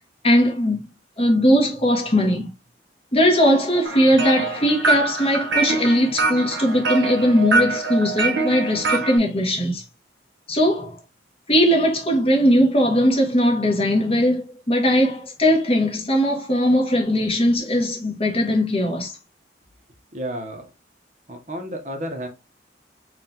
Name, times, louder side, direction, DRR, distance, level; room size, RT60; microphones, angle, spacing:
voice 1, 0.2-0.9 1.2-2.5 3.1-9.8 10.5-11.0 11.5-19.2, equal, 30° left, 1.2 m, -19 dB
sound 1, 3.8-9.2, right 3 dB, 80° right, 0.8 m, -24 dB
voice 2, 20.1-20.7 21.3-22.3, equal, 40° right, 0.8 m, -31 dB
4.4 x 2.4 x 3.6 m
head